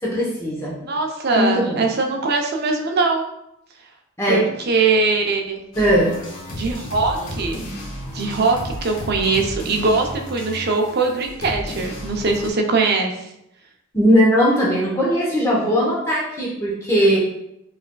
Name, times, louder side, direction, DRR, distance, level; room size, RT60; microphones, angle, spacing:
voice 1, 0.0-0.8 1.3-1.8 4.2-4.4 5.8-6.1 13.9-17.2, equal, 15° left, -5 dB, 0.8 m, -19 dB
voice 2, 0.8-3.2 4.3-5.6 6.5-7.6 8.1-13.3, right 3 dB, 50° right, 2 dB, 0.5 m, -21 dB
sound 1, 5.7-12.5, left 1 dB, 80° left, 1.3 m, -33 dB
4.8 x 3.3 x 2.2 m, 0.82 s
head